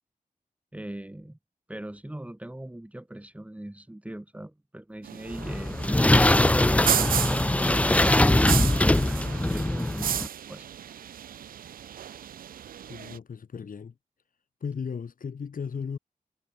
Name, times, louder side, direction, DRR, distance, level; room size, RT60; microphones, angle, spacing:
voice 1, 0.7-1.4 1.7-7.5 7.8-8.0 8.8-10.1 10.5-10.6, right 1 dB, 10° right, 4.5 m, -40 dB
sound 1, 5.0-13.2, right 9 dB, 90° right, 0.4 m, -33 dB
sound 2, 5.3-10.3, left 1 dB, 10° left, 0.6 m, -22 dB
voice 2, 12.9-13.9 14.6-16.0, left 6 dB, 75° left, 4.5 m, -35 dB
wide cardioid pair, 155°, 14 cm